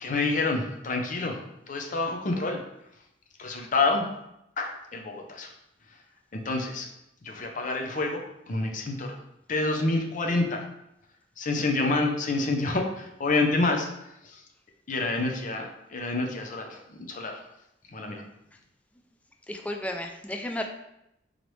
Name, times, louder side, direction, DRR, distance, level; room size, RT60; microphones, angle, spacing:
voice 1, 0.0-2.6 3.4-4.1 4.6-5.5 6.3-6.9 7.2-9.2 9.5-10.6 11.4-13.9 14.2-14.4 14.9-17.4 17.9-18.2, left 3 dB, 45° left, 3 dB, 0.6 m, -28 dB
voice 2, 19.5-20.7, left 1 dB, 10° left, 3 dB, 0.3 m, -33 dB
3.9 x 3.1 x 3.2 m, 0.83 s
head